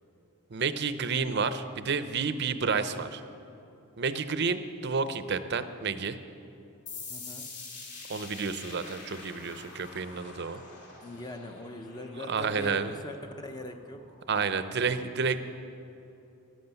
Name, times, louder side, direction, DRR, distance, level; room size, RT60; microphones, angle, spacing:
voice 1, 0.5-3.2 4.0-6.2 8.1-10.6 12.3-12.9 14.3-15.4, right 5 dB, 50° right, 11 dB, 0.6 m, -30 dB
sound 1, 6.9-14.2, left 4 dB, 50° left, 2.5 m, -46 dB
voice 2, 7.1-7.5 11.0-13.2 13.4-14.0, left 1 dB, 20° left, 6 dB, 0.7 m, -41 dB
13.5 x 11.5 x 7.0 m, 2.9 s
head